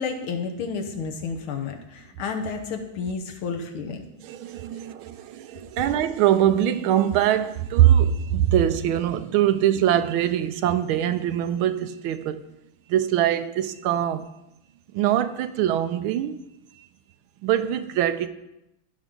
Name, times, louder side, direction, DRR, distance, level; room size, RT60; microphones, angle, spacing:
voice 1, 0.0-4.0, left 5 dB, 75° left, 1.9 m, -31 dB
voice 2, 4.2-12.4 12.9-14.2 14.9-16.4 17.4-18.3, right 11 dB, 80° right, 1.4 m, -22 dB
15.0 x 5.5 x 3.8 m
omnidirectional pair, 2.4 m